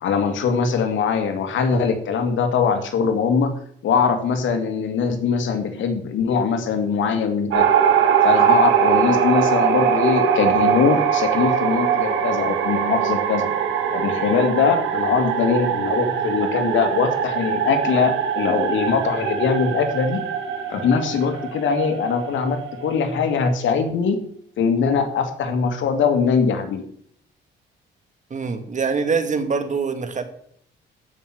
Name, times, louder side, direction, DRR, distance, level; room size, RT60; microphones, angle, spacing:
voice 1, 0.0-3.5 3.8-7.7 8.2-13.5 13.9-20.2 20.7-24.2 24.6-26.8, left 6 dB, 75° left, 6 dB, 2.1 m, -21 dB
sound 1, 7.5-23.4, right 8 dB, 85° right, 2.2 m, -22 dB
voice 2, 28.3-30.2, right 5 dB, 40° right, 9 dB, 1.9 m, -24 dB
12.5 x 5.8 x 7.9 m, 0.65 s
cardioid pair, 90°, 20 cm